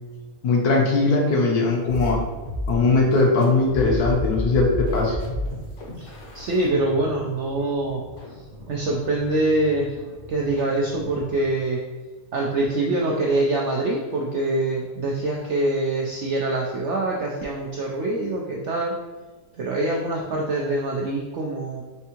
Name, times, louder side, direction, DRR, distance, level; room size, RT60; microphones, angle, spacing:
voice 1, 0.4-2.2 2.7-5.2, left 3 dB, 75° left, -1 dB, 1.3 m, -20 dB
sound 1, 1.9-11.6, left 1 dB, 55° left, 1.0 m, -33 dB
voice 2, 6.0-8.0 8.3-10.0 10.3-11.8 12.3-18.9 19.5-21.8, right 2 dB, 75° right, -2 dB, 0.6 m, -24 dB
4.4 x 3.4 x 2.9 m, 1.3 s
omnidirectional pair, 1.7 m